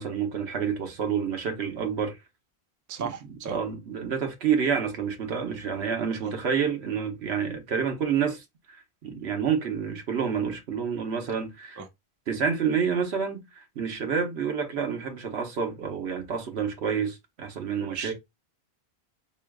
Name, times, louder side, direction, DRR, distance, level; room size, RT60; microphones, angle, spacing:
voice 1, 0.0-2.2 3.0-11.8 12.3-18.1, right 7 dB, 80° right, 1.1 m, -29 dB
voice 2, 2.9-3.6 6.2-6.3 11.8-11.9 17.9-18.1, right 6 dB, 25° right, 0.4 m, -35 dB
4.6 x 3.1 x 2.2 m
omnidirectional pair, 1.1 m